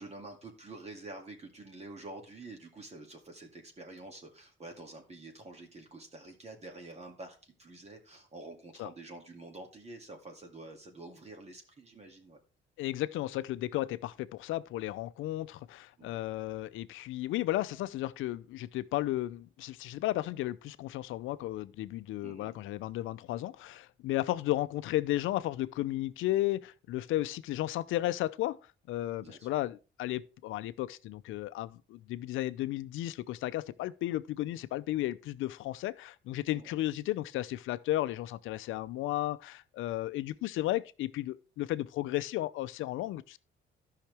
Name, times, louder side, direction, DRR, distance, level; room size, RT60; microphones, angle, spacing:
voice 1, 0.0-12.4 16.0-16.2 22.2-22.6 29.2-29.5 36.5-36.7, right 2 dB, 35° right, 2.2 m, -48 dB
voice 2, 12.8-28.6 28.9-43.4, left 15 dB, 85° left, 0.5 m, -34 dB
13.5 x 5.8 x 3.4 m
cardioid pair, 90°, 20 cm